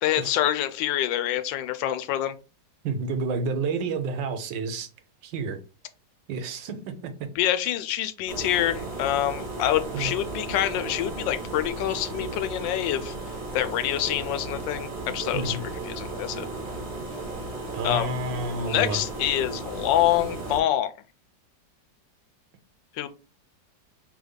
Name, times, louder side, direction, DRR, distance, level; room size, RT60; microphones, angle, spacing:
voice 1, 0.0-2.3 7.4-13.1 13.5-16.5 17.8-18.1 18.7-20.9 23.0-23.1, left 12 dB, 85° left, 1.3 m, -26 dB
voice 2, 2.8-4.9 5.2-5.6 6.3-7.3 9.9-10.1 15.3-15.6 17.7-19.0, right 3 dB, 85° right, 1.4 m, -30 dB
sound 1, 8.3-20.6, right 2 dB, 40° right, 0.8 m, -35 dB
5.0 x 3.4 x 2.3 m
omnidirectional pair, 2.0 m